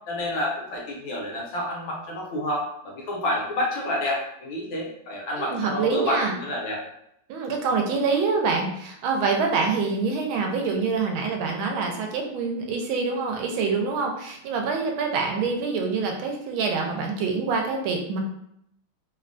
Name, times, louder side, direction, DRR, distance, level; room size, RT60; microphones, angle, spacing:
voice 1, 0.1-6.8, left 1 dB, 70° left, -2 dB, 1.5 m, -29 dB
voice 2, 5.4-6.3 7.3-18.2, right 4 dB, 75° right, 2 dB, 1.3 m, -26 dB
3.6 x 2.2 x 2.5 m, 0.75 s
omnidirectional pair, 2.3 m